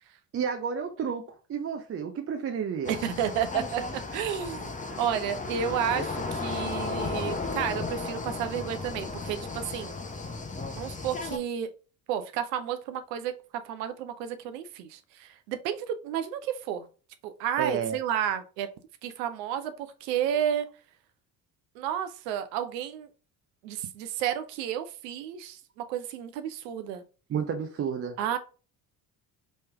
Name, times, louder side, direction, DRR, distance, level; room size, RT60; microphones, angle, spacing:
voice 1, 0.3-3.0 17.6-18.0 27.3-28.2, right 7 dB, 30° right, 0.5 m, -31 dB
sound 1, 2.8-11.4, left 3 dB, 15° left, 0.7 m, -34 dB
voice 2, 2.9-4.7 5.0-10.0 10.8-11.7 12.1-13.3 13.6-16.9 17.2-18.7 19.0-20.7 21.8-23.1 23.6-27.0 28.2-28.4, right 9 dB, 75° right, 0.6 m, -31 dB
3.1 x 3.0 x 3.3 m
hypercardioid pair, 55°, 49 cm